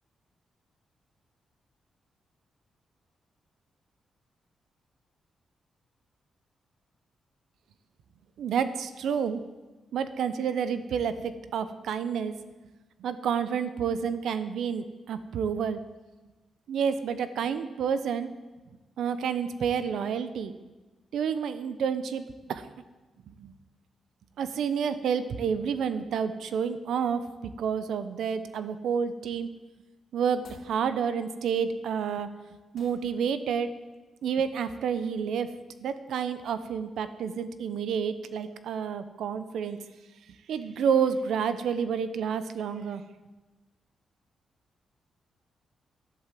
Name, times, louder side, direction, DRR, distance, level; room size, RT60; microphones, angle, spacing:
voice 1, 8.4-9.4 9.9-12.3 13.0-15.8 16.7-18.3 19.0-20.5 21.1-22.7 23.3-23.5 24.4-29.5 30.1-32.3 32.7-33.7 34.2-35.5 35.8-39.8 40.5-43.0, right 7 dB, 85° right, 12 dB, 0.9 m, -29 dB
sound 1, 30.3-30.8 32.7-33.1, left 4 dB, 55° left, 2.8 m, -52 dB
12.0 x 11.0 x 7.6 m, 1.2 s
wide cardioid pair, 140°, 0 cm